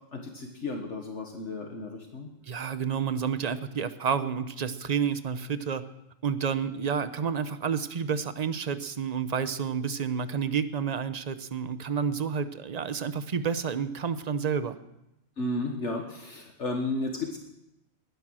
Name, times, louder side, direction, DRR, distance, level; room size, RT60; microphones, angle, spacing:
voice 1, 0.1-2.3 15.4-17.4, left 2 dB, 60° left, 2 dB, 1.7 m, -33 dB
voice 2, 2.5-5.9 6.2-14.8, right 6 dB, 40° right, 12 dB, 0.7 m, -30 dB
20.5 x 10.0 x 6.3 m, 0.89 s
omnidirectional pair, 1.4 m